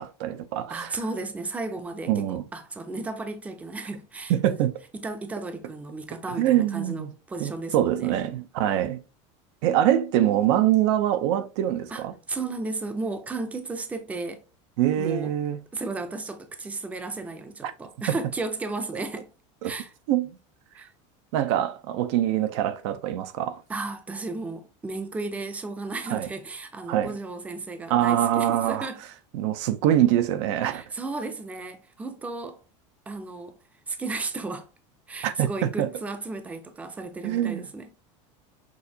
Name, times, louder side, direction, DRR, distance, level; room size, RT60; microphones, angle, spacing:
voice 1, 0.0-0.9 2.1-2.4 4.3-4.7 6.4-7.1 7.4-9.0 9.6-12.1 14.8-15.6 17.6-17.7 19.6-19.7 20.1-20.4 21.3-23.6 26.1-26.3 26.9-27.1 27.9-28.9 29.3-30.8 35.2-35.9 37.2-37.7, right 12 dB, 70° right, 0.6 m, -24 dB
voice 2, 0.7-4.6 4.9-8.2 11.9-14.4 15.0-15.3 15.7-19.3 19.6-19.9 20.7-20.9 23.7-29.0 30.7-32.6 33.1-33.6 33.9-34.7 35.1-37.9, right 3 dB, 10° right, 0.5 m, -34 dB
6.3 x 2.7 x 2.7 m
supercardioid pair, 155°, 15 cm